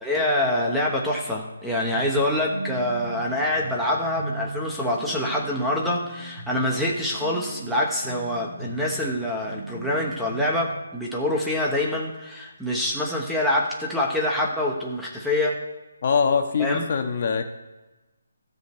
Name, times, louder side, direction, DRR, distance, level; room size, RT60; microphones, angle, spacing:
voice 1, 0.0-15.6 16.6-16.8, left 1 dB, ahead, -3 dB, 1.0 m, -25 dB
sound 1, 1.9-10.8, right 2 dB, 90° right, 2.2 m, -38 dB
voice 2, 16.0-17.5, left 6 dB, 40° left, 5 dB, 1.2 m, -23 dB
13.5 x 5.1 x 7.9 m, 1.1 s
hypercardioid pair, 170°, 0 cm